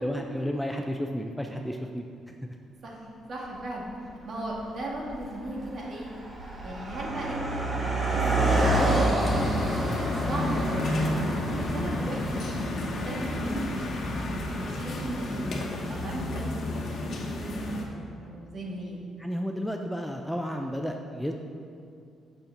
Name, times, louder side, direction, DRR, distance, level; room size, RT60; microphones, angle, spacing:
voice 1, 0.0-2.0 9.8-10.0 19.2-21.3, equal, ahead, 3 dB, 0.5 m, -32 dB
voice 2, 3.3-3.9 4.2-6.1 6.6-9.6 10.3-11.1 11.6-14.1 14.6-17.1 17.4-19.0, right 1 dB, 55° right, -3 dB, 1.9 m, -36 dB
Car passing by, 3.4-3.5 4.3-4.6 4.9-15.3, right 1 dB, 30° right, 1.7 m, -29 dB
sound 1, 9.2-17.8, left 1 dB, 55° left, 1.2 m, -31 dB
6.6 x 5.7 x 5.9 m, 2.4 s
cardioid pair, 90°, 0 cm